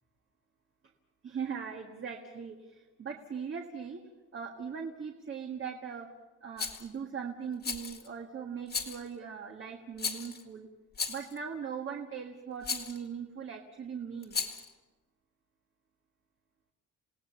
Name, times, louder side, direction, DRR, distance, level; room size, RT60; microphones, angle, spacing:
voice 1, 1.2-4.0 4.3-6.1 6.4-10.7 11.1-14.4, right 6 dB, 40° right, 2 dB, 1.7 m, -40 dB
Rattle, 6.6-6.9 7.6-8.1 8.7-9.1 10.0-10.4 10.9-11.4 12.6-13.0 14.2-14.7, left 5 dB, 30° left, 2.0 m, -35 dB
28.5 x 17.5 x 6.9 m, 1.2 s
cardioid pair, 150°, 32 cm